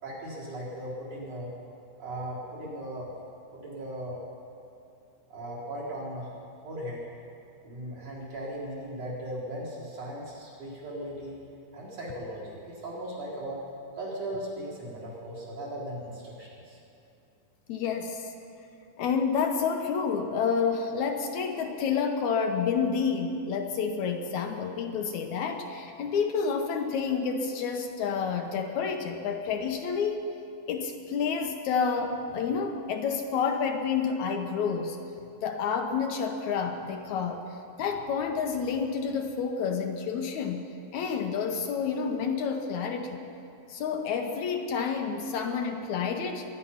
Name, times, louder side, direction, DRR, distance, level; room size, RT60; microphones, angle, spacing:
voice 1, 0.0-1.5 2.0-3.1 3.5-4.2 5.3-6.3 6.6-7.1 7.6-11.4 11.7-13.6 13.9-16.8, right 1 dB, 55° right, -7 dB, 4.9 m, -37 dB
voice 2, 17.7-18.3 19.0-30.3 30.7-35.0 35.4-37.4 37.8-43.2 43.7-46.5, left 6 dB, 75° left, 4 dB, 2.1 m, -29 dB
22.0 x 10.5 x 5.7 m, 2.6 s
omnidirectional pair, 3.6 m